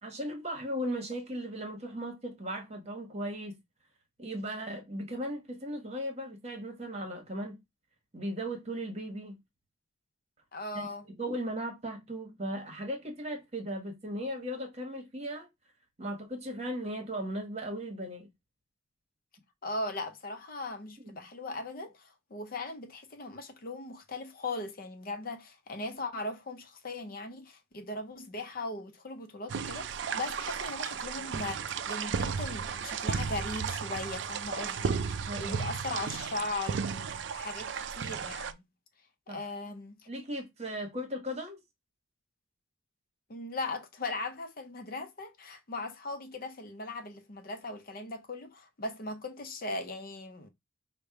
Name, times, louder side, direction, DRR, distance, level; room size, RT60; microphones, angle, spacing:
voice 1, 0.0-3.6 4.2-7.6 8.1-9.4 10.7-10.9 11.2-15.5 16.0-18.3 21.0-21.2 35.3-36.0 39.3-39.4 40.1-41.6, equal, 35° right, 1.1 m, -37 dB
voice 2, 10.5-11.0 19.6-38.6 39.3-40.0 43.3-50.5, left 2 dB, 45° left, 0.6 m, -39 dB
sound 1, 29.5-38.5, right 6 dB, 60° right, 0.4 m, -34 dB
5.2 x 2.2 x 4.6 m
head